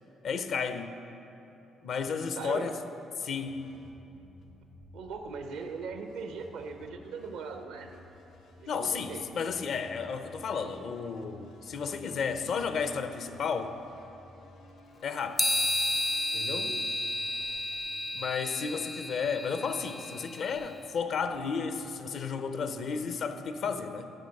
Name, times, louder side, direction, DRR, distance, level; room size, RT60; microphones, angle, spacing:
voice 1, 0.2-1.0 1.8-2.7 3.2-3.6 8.7-13.8 15.0-15.4 16.3-16.7 18.1-24.1, left 5 dB, 60° left, 9 dB, 0.6 m, -33 dB
voice 2, 2.4-2.7 4.9-7.9 8.6-9.2 16.3-16.9, right 5 dB, 75° right, 6 dB, 0.8 m, -40 dB
sound 1, 3.5-23.0, left 2 dB, 85° left, 1.2 m, -56 dB
sound 2, 15.4-20.7, left 1 dB, 10° left, 0.4 m, -32 dB
11.5 x 6.3 x 5.2 m, 2.9 s
hypercardioid pair, 50°, 0 cm